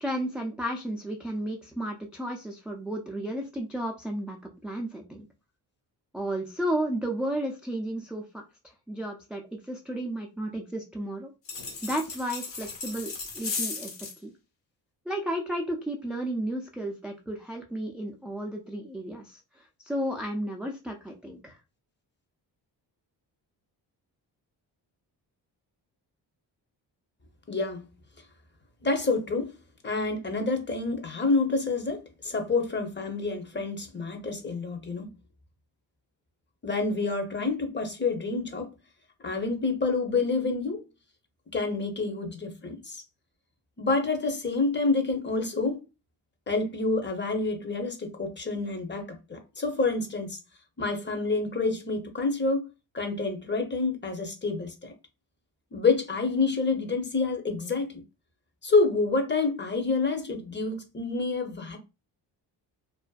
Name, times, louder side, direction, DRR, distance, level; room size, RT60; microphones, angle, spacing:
voice 1, 0.0-4.4 4.6-5.3 6.1-8.4 8.9-11.3 11.8-13.9 14.2-14.3 15.1-21.6, right 1 dB, ahead, 0.3 m, -33 dB
sound 1, 11.5-14.2, left 4 dB, 70° left, 1.2 m, -36 dB
voice 2, 27.5-27.9 28.8-29.5 29.8-35.1 36.6-38.7 39.2-40.8 41.5-43.0 43.8-45.8 46.5-50.4 50.8-52.7 52.9-54.9 55.7-58.0 58.6-61.8, left 3 dB, 25° left, 0.7 m, -28 dB
2.5 x 2.1 x 2.3 m
supercardioid pair, 60°, 46 cm